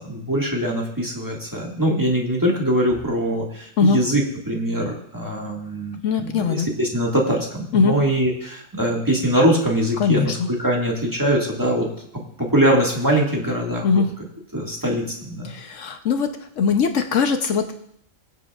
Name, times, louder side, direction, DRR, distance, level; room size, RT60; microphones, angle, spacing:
voice 1, 0.0-11.9 12.4-13.8 14.5-15.5, right 1 dB, 15° right, -2 dB, 1.8 m, -22 dB
voice 2, 6.0-6.7 7.7-7.9 10.0-10.3 13.8-14.1 15.4-17.7, left 5 dB, 70° left, 6 dB, 1.1 m, -20 dB
22.5 x 8.0 x 2.4 m, 0.73 s
omnidirectional pair, 1.3 m